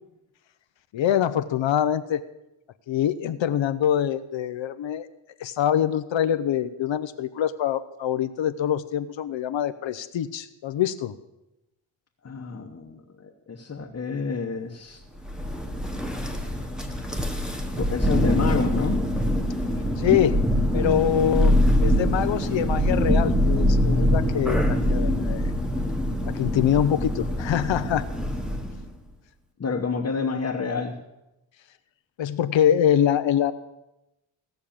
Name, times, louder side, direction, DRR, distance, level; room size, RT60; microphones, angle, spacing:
voice 1, 0.9-2.2 2.9-5.1 5.4-11.1 20.0-20.4 20.7-25.5 26.3-28.0 32.2-33.5, left 10 dB, 65° left, 10 dB, 0.8 m, -24 dB
voice 2, 12.2-15.0 17.7-19.0 29.6-31.0, left 5 dB, 30° left, 0 dB, 1.1 m, -29 dB
Thunder, 15.2-28.9, equal, ahead, 1.3 m, -24 dB
16.5 x 6.5 x 8.7 m, 0.94 s
cardioid pair, 130°, 49 cm